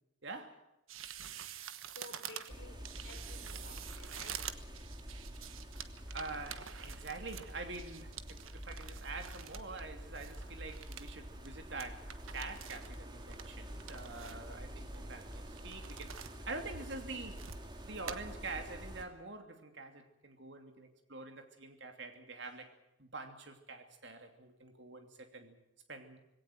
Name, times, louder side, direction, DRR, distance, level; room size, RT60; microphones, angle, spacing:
voice 1, 0.2-0.7 6.1-16.2 16.5-17.5 17.8-22.7 23.0-25.6 25.9-26.2, right 3 dB, 55° right, 2.8 m, -46 dB
sound 1, 0.9-9.8 10.1-11.1 11.4-11.5 11.8-13.0 13.3-14.5 14.9-16.4 16.7-17.7 18.1-18.2, right 9 dB, 80° right, 1.3 m, -47 dB
voice 2, 1.9-4.4, left 2 dB, 60° left, 4.1 m, -54 dB
sound 2, 2.5-19.1, equal, 20° right, 2.1 m, -47 dB
20.5 x 17.5 x 9.3 m
head